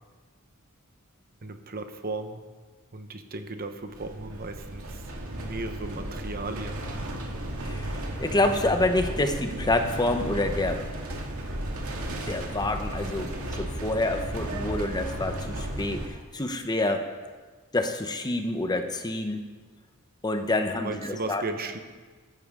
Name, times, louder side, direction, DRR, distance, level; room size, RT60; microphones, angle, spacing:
voice 1, 1.4-2.4 2.9-5.0 5.3-6.9 20.5-21.8, right 2 dB, 45° right, 7 dB, 1.0 m, -36 dB
sound 1, 3.8-16.1, right 1 dB, 70° right, 2.2 m, -34 dB
voice 2, 8.2-10.8 12.3-13.3 13.6-17.1 17.7-19.4 20.2-21.4, left 2 dB, 20° left, 7 dB, 0.7 m, -27 dB
15.0 x 12.0 x 3.7 m, 1.4 s
head